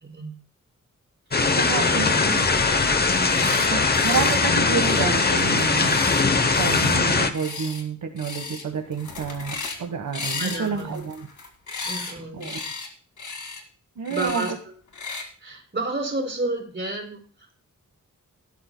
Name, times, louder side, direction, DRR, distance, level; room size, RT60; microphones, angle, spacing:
voice 1, 0.0-0.3 1.7-2.3 3.1-3.5 10.4-11.0 11.9-12.5 14.1-14.5 15.4-17.6, right 2 dB, 35° right, -1 dB, 4.2 m, -31 dB
sound 1, 1.3-7.3, left 4 dB, 30° left, 0.8 m, -21 dB
voice 2, 1.5-2.4 3.7-6.0 6.6-11.3 11.8-12.6 14.0-14.5, right 6 dB, 80° right, 3 dB, 1.4 m, -29 dB
sound 2, 3.1-3.7 3.9-4.4 4.7-7.0 7.3-7.8 8.2-8.6 8.9-9.8 10.1-12.1 12.4-12.9 13.2-13.6 14.0-14.5 14.9-15.2, left 4 dB, 65° left, 2.2 m, -34 dB
18.0 x 11.5 x 2.2 m, 0.40 s
wide cardioid pair, 165°, 32 cm